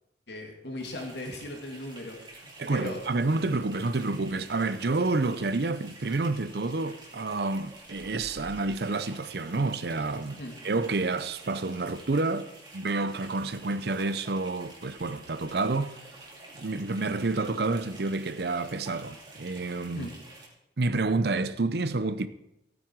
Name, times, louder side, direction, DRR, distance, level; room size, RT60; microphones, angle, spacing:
voice 1, 0.3-3.0 10.4-10.6 19.9-20.1, left 1 dB, 70° left, 2.6 m, -38 dB
sound 1, 0.8-20.5, right 2 dB, 25° right, 2.8 m, -49 dB
voice 2, 2.6-16.0 16.5-20.1 20.8-22.3, right 3 dB, 60° right, 0.7 m, -29 dB
15.5 x 9.1 x 4.7 m
head